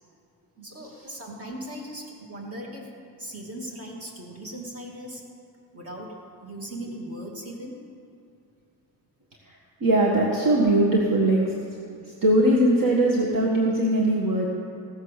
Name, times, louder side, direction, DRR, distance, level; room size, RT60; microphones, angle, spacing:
voice 1, 0.6-2.9 3.2-5.2 5.7-6.1 6.4-7.8, right 1 dB, 35° right, -2 dB, 2.6 m, -38 dB
voice 2, 9.8-11.5 12.2-14.5, right 1 dB, 50° right, -2 dB, 1.7 m, -20 dB
16.0 x 7.6 x 6.6 m, 2.5 s
cardioid pair, 120°, 41 cm